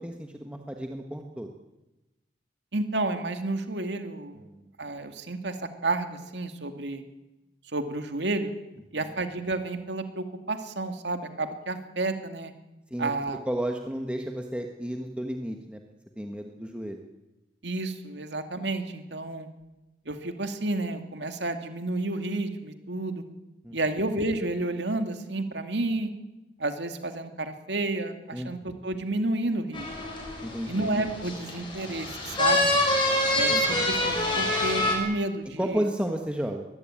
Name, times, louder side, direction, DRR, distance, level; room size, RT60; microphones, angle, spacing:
voice 1, 0.0-1.5 4.3-4.6 12.9-13.1 13.4-15.8 16.1-17.0 23.6-23.8 28.3-28.8 30.4-30.9 33.5-33.9 35.6-36.6, right 1 dB, 5° right, 3 dB, 1.5 m, -32 dB
voice 2, 2.7-4.4 4.8-5.6 5.8-7.0 7.7-8.5 8.9-12.5 13.0-13.4 17.6-19.5 20.1-23.2 23.7-26.1 26.6-30.1 30.7-32.7 33.3-35.8, right 2 dB, 75° right, 7 dB, 2.4 m, -31 dB
sound 1, 29.7-34.9, left 1 dB, 25° left, 7.0 m, -26 dB
22.5 x 20.0 x 9.0 m, 1.0 s
head